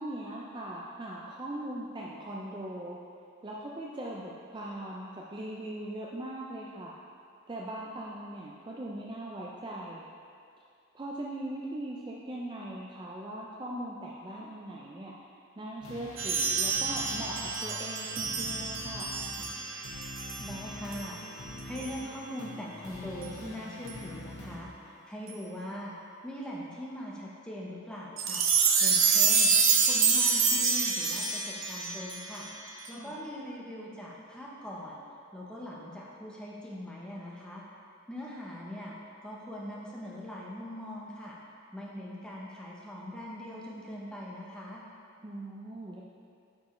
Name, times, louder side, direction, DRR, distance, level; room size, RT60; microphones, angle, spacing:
voice 1, 0.0-3.0 3.4-7.0 7.5-10.1 10.9-15.1 15.6-19.2 32.9-33.1 45.2-46.0, right 1 dB, 20° right, -4 dB, 0.4 m, -40 dB
sound 1, 15.8-24.6, left 1 dB, 80° left, 1.2 m, -45 dB
sound 2, 16.2-20.6 20.9-21.1 21.8-21.9 23.2-23.3 23.9-24.0 25.3-25.4 28.2-32.9, right 5 dB, 65° right, 0.7 m, -27 dB
voice 2, 20.4-21.2 21.6-25.9 26.2-28.4 28.8-29.6 29.9-32.5 32.9-35.0 35.3-37.6 38.1-39.0 39.2-41.4 41.7-44.8, left 1 dB, 5° left, -4 dB, 0.7 m, -41 dB
9.3 x 4.5 x 3.1 m, 2.4 s
head